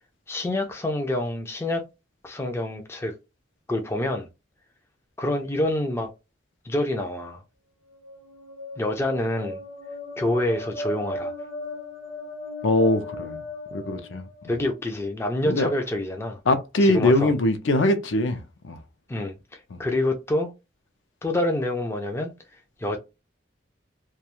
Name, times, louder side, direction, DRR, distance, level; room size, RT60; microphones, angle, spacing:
voice 1, 0.3-1.8 2.2-3.2 3.7-4.3 5.2-6.1 6.6-7.4 8.8-9.6 10.2-11.3 14.5-16.4 16.8-17.3 19.1-20.5 21.2-22.3 22.8-23.0, left 1 dB, 15° left, 0.4 m, -27 dB
sound 1, 7.9-14.8, left 2 dB, 60° left, 1.0 m, -37 dB
voice 2, 12.6-13.4 13.7-14.2 15.5-15.7 16.5-18.8 19.7-19.8, left 2 dB, 75° left, 0.5 m, -22 dB
2.3 x 2.2 x 2.9 m
head